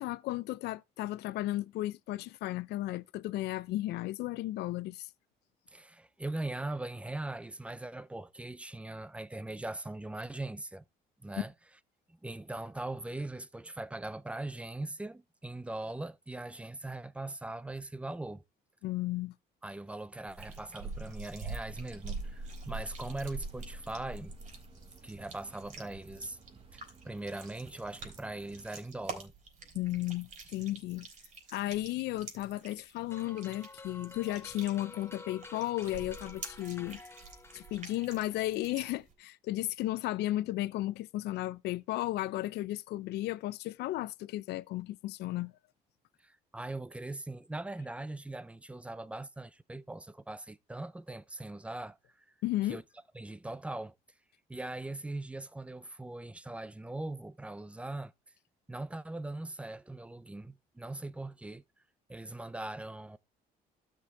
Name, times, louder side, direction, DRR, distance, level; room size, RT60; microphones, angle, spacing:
voice 1, 0.0-5.1 18.8-19.3 29.7-31.1 31.5-37.0 37.5-45.5 52.4-52.8, left 16 dB, 80° left, 0.6 m, -34 dB
voice 2, 5.7-10.8 11.2-11.5 12.1-18.4 19.6-24.3 25.0-26.4 26.7-29.3 46.2-52.3 52.7-52.8 53.1-53.9 54.5-58.1 58.7-61.6 62.1-63.2, right 2 dB, 5° right, 0.5 m, -40 dB
sound 1, 20.3-39.1, right 3 dB, 50° right, 3.8 m, -46 dB
sound 2, 21.7-28.7, right 5 dB, 30° right, 1.4 m, -58 dB
sound 3, 33.1-38.7, left 3 dB, 15° left, 0.9 m, -51 dB
12.5 x 6.3 x 3.5 m
cardioid pair, 110°, 17 cm